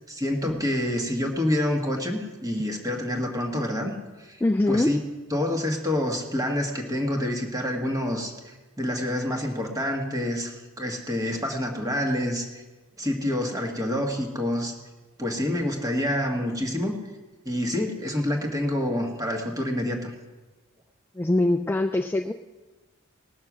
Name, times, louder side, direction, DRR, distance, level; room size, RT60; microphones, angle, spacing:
voice 1, 0.1-4.4 4.7-5.0 5.3-12.6 13.0-14.7 15.2-16.9 17.4-20.1, left 1 dB, 15° right, 2 dB, 1.5 m, -27 dB
voice 2, 4.4-4.9 21.2-22.3, left 2 dB, 10° left, 6 dB, 0.3 m, -23 dB
19.0 x 6.6 x 6.1 m, 1.2 s
head